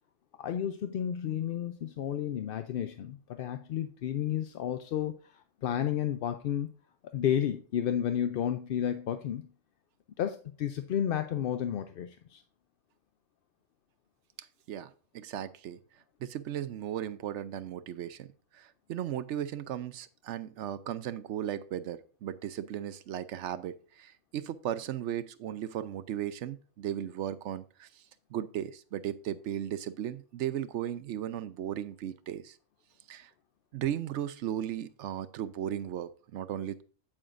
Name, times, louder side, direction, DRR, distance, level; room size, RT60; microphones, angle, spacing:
voice 1, 0.4-6.7 7.1-9.5 10.2-12.4, left 10 dB, 60° left, 0.6 m, -32 dB
voice 2, 14.4-15.8 16.2-18.3 18.5-28.0 28.3-32.6 33.1-33.3 33.7-36.8, right 10 dB, 75° right, 0.9 m, -36 dB
8.9 x 8.7 x 2.5 m
omnidirectional pair, 1.3 m